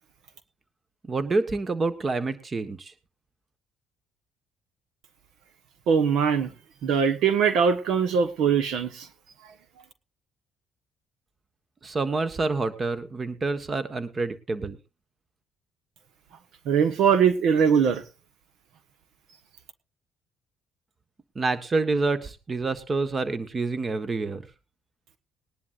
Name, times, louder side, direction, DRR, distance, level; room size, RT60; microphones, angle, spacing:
voice 1, 1.1-2.9 11.8-14.8 21.3-24.4, right 3 dB, 30° right, 11 dB, 1.3 m, -27 dB
voice 2, 5.9-6.5 6.8-9.1 16.6-18.0, right 7 dB, 75° right, 11 dB, 1.3 m, -21 dB
20.0 x 11.0 x 2.6 m, 0.28 s
cardioid pair, 90°, 0 cm